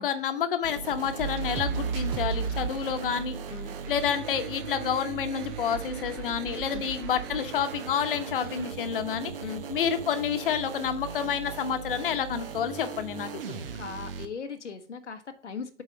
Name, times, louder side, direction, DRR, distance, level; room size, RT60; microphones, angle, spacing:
voice 1, 0.0-3.4 3.9-9.3 9.7-13.6, left 8 dB, 45° left, 8 dB, 1.1 m, -29 dB
sound 1, 0.6-14.2, right 6 dB, 50° right, 1.0 m, -38 dB
sound 2, 1.2-5.0 5.3-8.7, right 6 dB, 20° right, 0.6 m, -36 dB
voice 2, 13.7-15.8, left 6 dB, 70° left, 6 dB, 1.0 m, -39 dB
7.7 x 4.1 x 5.1 m, 0.41 s
figure-of-eight pair, 115°, 36 cm